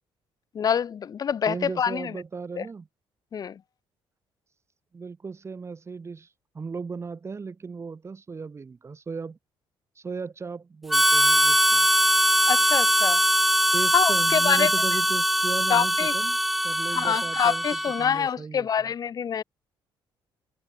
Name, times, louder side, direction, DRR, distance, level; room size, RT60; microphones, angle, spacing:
voice 1, 0.5-2.2 2.6-2.7 3.3-3.6 12.5-13.2 13.9-14.7 15.7-16.1 16.9-19.4, left 7 dB, 40° left, 0.7 m, -26 dB
voice 2, 1.5-2.9 4.9-9.4 9.9-11.9 13.7-16.4 16.6-17.6 18.0-18.9, right 5 dB, 30° right, 2.9 m, -36 dB
Harmonica, 10.9-18.2, equal, ahead, 0.3 m, -22 dB
cardioid pair, 115°, 9 cm